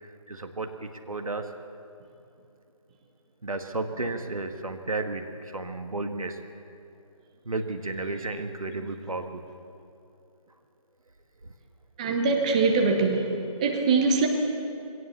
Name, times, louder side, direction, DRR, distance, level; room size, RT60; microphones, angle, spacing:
voice 1, 0.0-1.5 3.4-6.4 7.5-9.5 11.4-11.5, right 2 dB, 70° right, 6 dB, 1.7 m, -33 dB
voice 2, 12.0-13.3 13.6-14.3, right 4 dB, 10° right, 2 dB, 1.0 m, -22 dB
22.0 x 17.5 x 7.1 m, 2.6 s
figure-of-eight pair, 155°, 19 cm